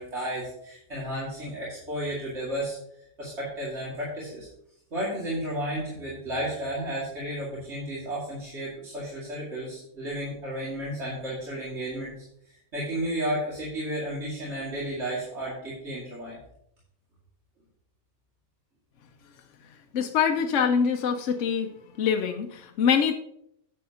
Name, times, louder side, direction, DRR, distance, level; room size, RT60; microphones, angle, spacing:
voice 1, 0.0-4.5 4.9-12.2 12.7-16.4, right 1 dB, 60° right, -7 dB, 2.5 m, -33 dB
voice 2, 19.9-23.1, left 7 dB, 70° left, 4 dB, 1.0 m, -24 dB
10.0 x 7.8 x 2.8 m, 0.74 s
omnidirectional pair, 1.3 m